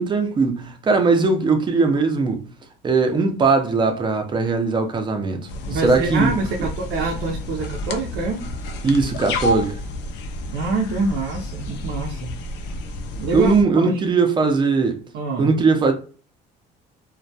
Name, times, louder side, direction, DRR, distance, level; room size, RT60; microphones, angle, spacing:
voice 1, 0.0-2.5 2.8-6.3 8.8-9.8 13.3-15.0 15.4-15.9, right 4 dB, 25° right, 0.5 m, -19 dB
sound 1, 5.5-13.6, left 1 dB, 85° left, 0.4 m, -30 dB
voice 2, 5.7-8.4 10.5-12.4 13.2-14.0 15.1-15.5, right 3 dB, 80° right, 0.5 m, -26 dB
2.2 x 2.1 x 2.6 m
cardioid pair, 110°, 18 cm